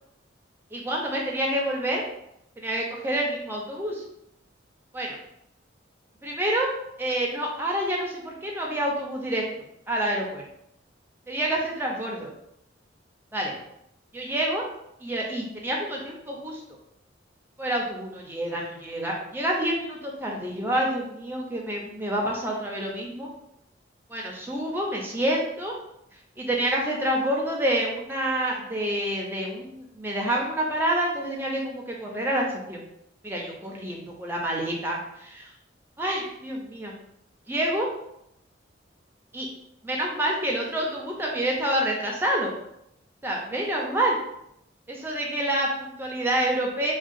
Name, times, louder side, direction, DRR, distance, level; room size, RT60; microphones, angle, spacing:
voice 1, 0.7-2.0 2.6-4.0 4.9-5.2 6.2-6.7 7.0-9.4 9.9-10.4 11.3-12.3 13.3-13.5 14.1-14.6 15.0-16.6 17.6-23.3 24.1-25.7 26.4-32.8 33.2-35.5 36.0-36.9 37.5-37.9 39.3-39.5 39.8-42.5 43.2-44.2 44.9-46.9, right 1 dB, 10° right, -2 dB, 0.5 m, -28 dB
3.6 x 2.2 x 2.5 m, 0.80 s
head